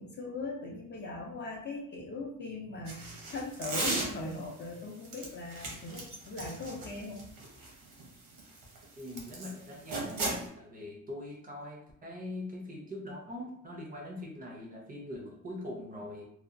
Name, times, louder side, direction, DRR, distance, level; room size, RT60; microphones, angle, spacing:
voice 1, 0.0-7.3, left 2 dB, 35° left, -1 dB, 0.4 m, -40 dB
sound 1, 2.9-4.5 5.0-9.5 9.9-10.5, right 2 dB, 90° right, 0.9 m, -36 dB
voice 2, 9.0-16.3, left 1 dB, 25° right, -1 dB, 0.4 m, -42 dB
2.7 x 2.2 x 2.5 m, 0.72 s
wide cardioid pair, 175°, 33 cm